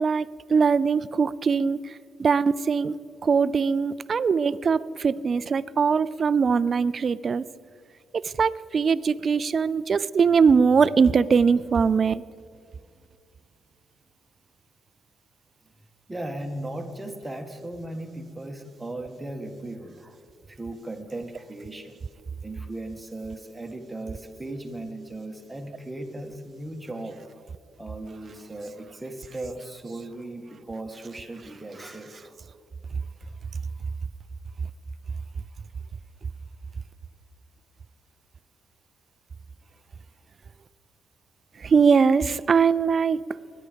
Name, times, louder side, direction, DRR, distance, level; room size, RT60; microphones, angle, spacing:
voice 1, 0.0-1.9 2.2-3.0 3.2-7.4 8.1-12.2 41.6-43.2, right 5 dB, 45° right, 18 dB, 0.4 m, -21 dB
voice 2, 16.1-20.2 20.5-21.9 22.4-27.2 27.8-32.4, right 1 dB, 10° right, 5 dB, 1.5 m, -37 dB
21.0 x 10.5 x 5.2 m, 2.3 s
cardioid pair, 90°, 0 cm